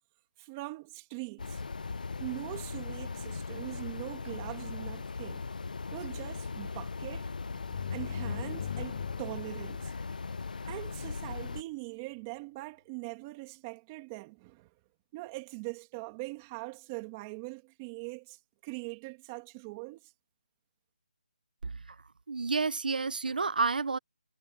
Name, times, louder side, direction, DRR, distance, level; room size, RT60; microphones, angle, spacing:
voice 1, 0.4-1.6 2.2-5.4 5.9-7.3 7.9-9.9 10.7-14.7 15.1-20.1, right 24 dB, 15° right, 2.3 m, -42 dB
sound 1, 1.4-11.6, left 4 dB, 60° left, 0.7 m, -39 dB
sound 2, 7.5-11.1, left 8 dB, 25° left, 0.4 m, -41 dB
voice 2, 22.3-24.0, right 4 dB, 70° right, 0.7 m, -30 dB
hypercardioid pair, 175°, 5 cm